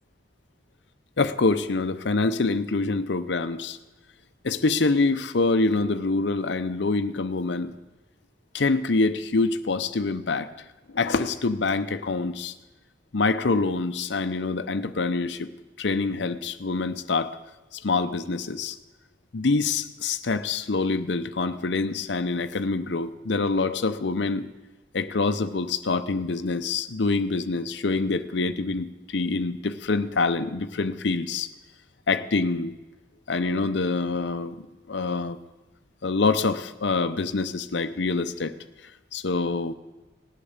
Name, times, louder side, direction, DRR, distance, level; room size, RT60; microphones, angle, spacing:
voice 1, 1.2-3.8 4.4-7.7 8.5-10.5 10.9-12.5 13.1-15.5 15.8-17.4 17.7-18.8 19.3-24.5 24.9-31.5 32.1-32.7 33.3-34.6 34.9-35.4 36.0-38.5 39.1-39.7, left 3 dB, 70° left, 10 dB, 0.7 m, -25 dB
17.5 x 8.4 x 7.2 m, 1.1 s
head